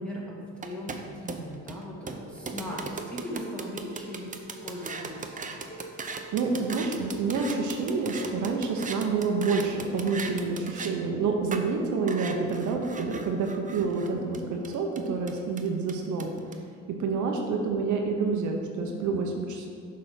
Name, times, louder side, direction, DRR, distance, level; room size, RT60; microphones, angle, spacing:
voice 1, 0.0-5.5, equal, 5° left, -5 dB, 1.8 m, -38 dB
sound 1, 0.6-10.9 11.5-11.6 12.1-16.5, right 4 dB, 25° right, 0.6 m, -38 dB
Dishes pots and pans, 2.3-8.9, right 1 dB, 35° left, 1.5 m, -49 dB
voice 2, 6.3-16.3 16.9-19.7, right 4 dB, 75° right, 2 dB, 0.9 m, -28 dB
6.5 x 4.2 x 5.8 m, 2.2 s
cardioid pair, 90°, 30 cm